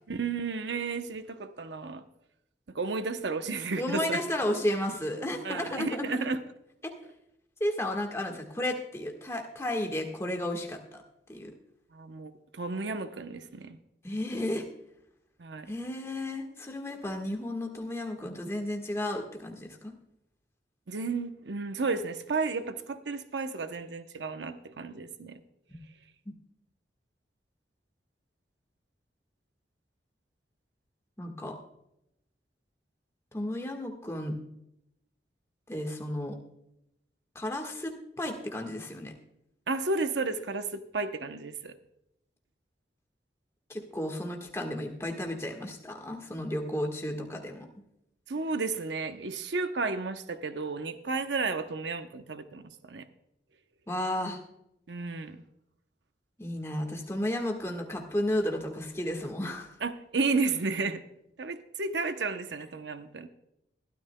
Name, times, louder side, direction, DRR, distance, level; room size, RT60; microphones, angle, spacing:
voice 1, 0.1-2.0 2.7-4.2 5.4-6.4 11.9-13.8 15.4-15.7 20.9-25.4 39.7-41.7 48.3-52.6 52.9-53.0 54.9-55.4 59.8-61.0 61.4-63.3, right 4 dB, 80° right, 8 dB, 0.8 m, -32 dB
voice 2, 3.8-6.3 6.8-6.9 7.6-11.0 11.3-11.5 14.0-14.6 15.7-19.9 31.2-31.6 33.3-34.4 35.7-36.4 37.3-39.1 43.7-47.7 53.9-54.4 56.4-59.7, left 1 dB, 15° left, 2 dB, 1.4 m, -33 dB
22.0 x 12.5 x 2.2 m, 0.83 s
head